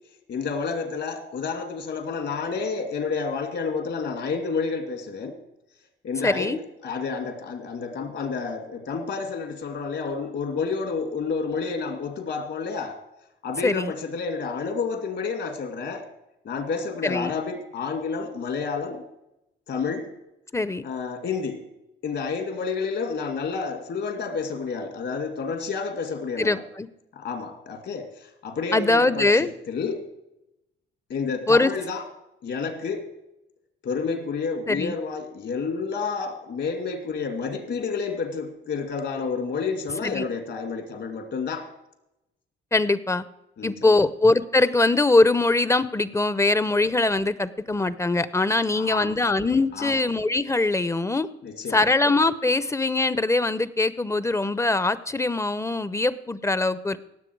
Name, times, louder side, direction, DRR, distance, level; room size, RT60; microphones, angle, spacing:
voice 1, 0.3-5.4 6.0-13.0 13.4-16.1 16.4-19.0 19.7-20.1 20.8-21.7 22.0-26.6 27.1-30.1 31.1-32.0 32.4-33.1 33.8-41.7 43.6-44.0 48.8-49.1 49.7-50.0 51.4-51.8, left 5 dB, 65° left, 7 dB, 2.4 m, -30 dB
voice 2, 6.2-6.6 13.6-13.9 17.0-17.3 20.5-20.9 26.4-26.9 28.7-29.5 31.5-31.7 34.7-34.9 40.0-40.2 42.7-43.2 43.6-51.3 51.7-57.0, left 2 dB, 15° left, 16 dB, 0.6 m, -22 dB
18.0 x 7.6 x 4.6 m, 0.88 s
cardioid pair, 90°, 20 cm